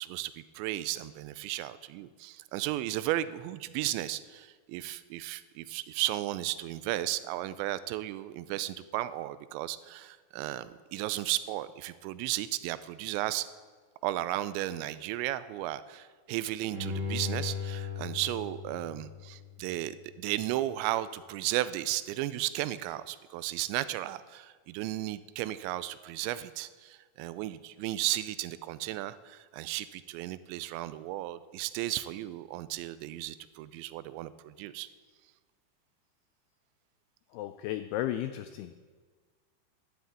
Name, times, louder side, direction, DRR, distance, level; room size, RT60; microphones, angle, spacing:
voice 1, 0.0-13.5 14.0-34.9, right 15 dB, 85° right, 15 dB, 2.9 m, -34 dB
Bowed string instrument, 16.7-19.8 20.2-20.3, left 5 dB, 55° right, 1.1 m, -37 dB
voice 2, 37.3-38.7, left 13 dB, 85° left, 10 dB, 2.3 m, -34 dB
12.0 x 9.4 x 8.3 m, 1.5 s
omnidirectional pair, 5.1 m